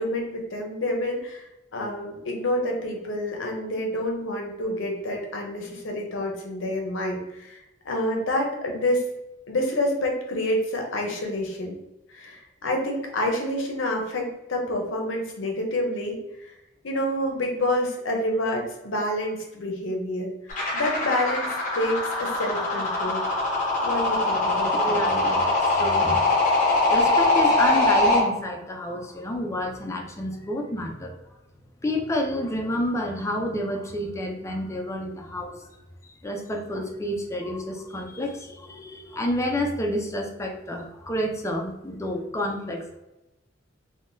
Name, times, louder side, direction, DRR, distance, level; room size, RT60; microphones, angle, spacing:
voice 1, 0.0-1.5 1.7-9.0 9.5-11.8 12.1-16.2 16.8-23.2 23.8-25.3, left 1 dB, 70° left, 1 dB, 0.7 m, -28 dB
sound 1, 20.5-28.2, left 2 dB, 40° left, 0.9 m, -22 dB
voice 2, 24.7-26.4 26.9-31.2 31.8-35.7 36.0-43.0, left 1 dB, 15° left, 2 dB, 0.4 m, -29 dB
3.6 x 2.2 x 2.6 m, 0.96 s
head